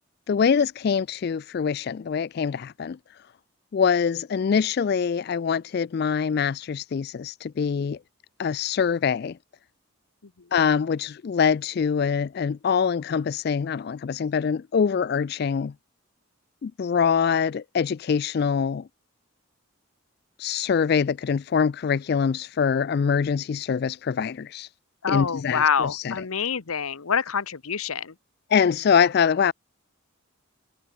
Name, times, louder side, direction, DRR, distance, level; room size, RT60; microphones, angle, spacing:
voice 1, 0.3-3.0 3.7-8.0 8.4-9.4 10.5-15.7 16.6-18.9 20.4-24.7 25.1-26.1 28.5-29.5, left 6 dB, 50° left, 0.3 m, -24 dB
voice 2, 25.0-28.1, left 6 dB, 90° left, 1.0 m, -26 dB
head